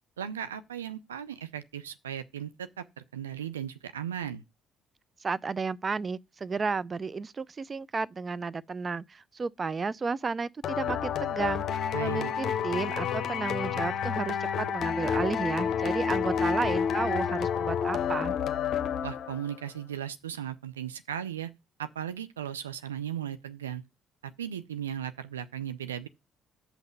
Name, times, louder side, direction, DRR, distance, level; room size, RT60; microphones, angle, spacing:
voice 1, 0.2-4.4 11.9-12.3 19.0-21.5 21.8-23.8 24.2-26.1, right 9 dB, 90° right, 0.5 m, -36 dB
voice 2, 5.2-18.4, right 4 dB, 35° right, 0.5 m, -32 dB
sound 1, 10.6-19.5, left 7 dB, 55° left, 0.8 m, -29 dB
7.1 x 5.7 x 6.6 m
hypercardioid pair, 50°, 0 cm